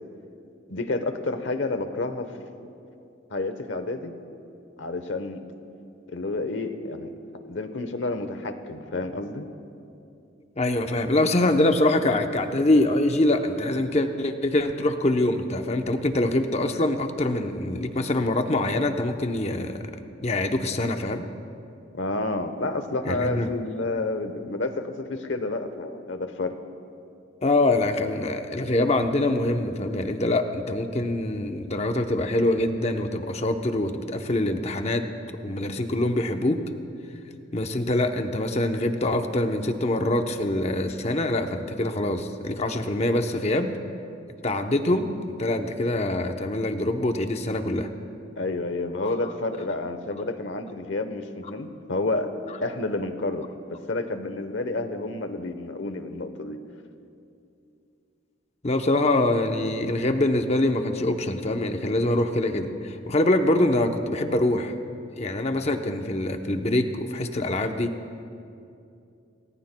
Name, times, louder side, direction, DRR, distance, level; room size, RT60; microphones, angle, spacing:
voice 1, 0.7-2.3 3.3-4.1 4.8-5.4 6.1-7.1 7.5-9.5 21.9-26.5 48.4-52.3 52.6-56.6, left 2 dB, 75° left, 9 dB, 1.0 m, -30 dB
voice 2, 10.6-19.9 20.2-21.3 23.0-23.5 27.4-36.6 37.5-43.7 44.4-45.1 45.4-47.9 49.0-49.2 58.6-64.7 65.2-67.9, left 1 dB, 35° left, 6 dB, 0.8 m, -24 dB
28.0 x 19.0 x 2.3 m, 2.6 s
head